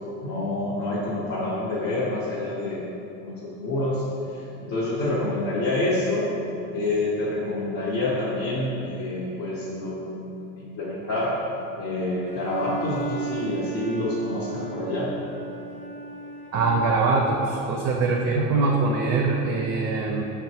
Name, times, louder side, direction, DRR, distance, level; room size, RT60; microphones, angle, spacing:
voice 1, 0.2-2.8 3.2-6.3 6.7-11.4 11.8-15.1 18.4-18.6, left 2 dB, 50° left, -8 dB, 0.8 m, -27 dB
Bowed string instrument, 12.3-17.0, right 5 dB, 20° left, 0.5 m, -35 dB
voice 2, 16.5-20.2, right 3 dB, 50° right, 0 dB, 0.4 m, -23 dB
5.5 x 2.2 x 2.7 m, 2.9 s
supercardioid pair, 105°, 35 cm